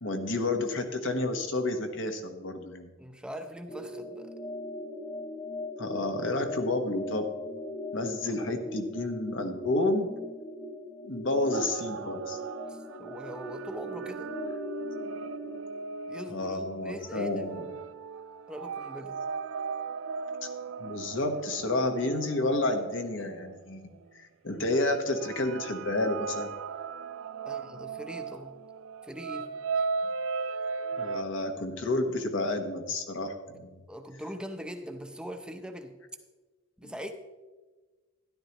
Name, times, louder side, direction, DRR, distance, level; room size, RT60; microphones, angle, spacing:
voice 1, 0.0-2.9 5.8-7.3 7.9-10.1 11.0-12.4 16.3-17.6 20.8-23.9 24.1-26.5 30.9-33.8 36.8-36.9, left 2 dB, 70° left, 5 dB, 1.2 m, -30 dB
voice 2, 3.0-4.3 8.3-8.4 12.7-14.3 16.1-17.8 18.5-19.2 27.4-28.6 29.0-29.8 33.9-36.0 36.8-37.1, equal, 5° right, 6 dB, 0.7 m, -42 dB
sound 1, 3.7-15.6, left 2 dB, 30° left, 1.0 m, -40 dB
sound 2, 11.5-24.0 24.7-31.2, right 5 dB, 85° right, 0.4 m, -37 dB
13.0 x 11.0 x 3.0 m, 1.3 s
head